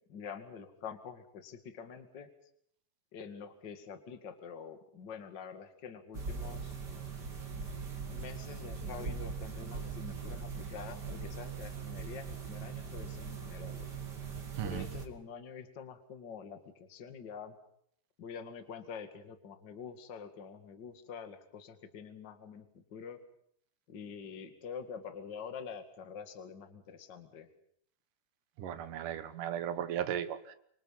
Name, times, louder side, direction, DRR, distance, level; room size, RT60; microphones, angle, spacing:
voice 1, 0.1-2.3 3.1-6.8 8.1-13.9 14.6-17.6 18.2-23.2 23.9-27.5, left 6 dB, 40° left, 7 dB, 2.3 m, -46 dB
sound 1, 6.1-15.1, right 5 dB, 35° right, 3.2 m, -41 dB
voice 2, 28.6-30.6, right 10 dB, 85° right, 11 dB, 2.8 m, -36 dB
26.0 x 25.0 x 5.7 m, 0.68 s
omnidirectional pair, 3.6 m